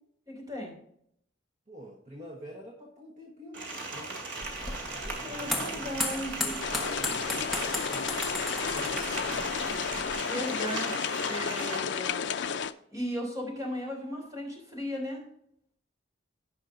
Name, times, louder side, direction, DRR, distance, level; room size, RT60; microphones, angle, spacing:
voice 1, 0.3-0.7 5.2-6.6 10.2-12.2 12.9-15.2, equal, 20° right, 0 dB, 3.2 m, -36 dB
voice 2, 1.7-4.5 4.9-9.7, right 1 dB, 40° right, -1 dB, 1.3 m, -47 dB
sound 1, 3.5-11.8, right 3 dB, 70° right, 2.6 m, -38 dB
sound 2, 4.4-10.1, left 2 dB, ahead, 1.2 m, -36 dB
sound 3, 6.6-12.7, left 6 dB, 65° left, 0.4 m, -32 dB
16.0 x 5.6 x 2.6 m, 0.71 s
head